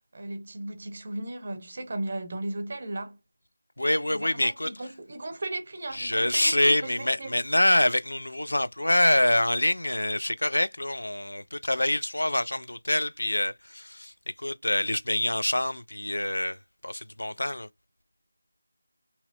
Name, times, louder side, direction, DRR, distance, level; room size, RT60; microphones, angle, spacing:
voice 1, 0.1-3.2 4.1-7.3, right 2 dB, 45° right, 0.8 m, -36 dB
voice 2, 3.8-4.7 5.9-14.1 14.4-17.7, left 1 dB, 85° left, 0.4 m, -26 dB
3.0 x 2.8 x 2.4 m
figure-of-eight pair, 170°, 0 cm